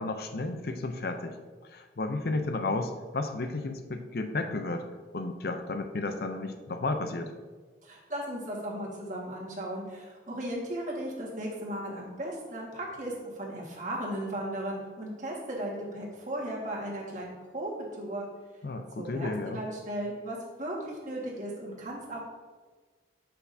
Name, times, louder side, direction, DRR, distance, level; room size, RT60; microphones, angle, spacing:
voice 1, 0.0-1.4 1.7-4.9 5.1-7.3 18.6-19.6, left 2 dB, 55° left, 7 dB, 0.5 m, -32 dB
voice 2, 7.8-17.7 18.0-18.3 18.9-22.2, right 1 dB, 40° right, -3 dB, 1.6 m, -36 dB
8.2 x 5.8 x 2.7 m, 1.4 s
head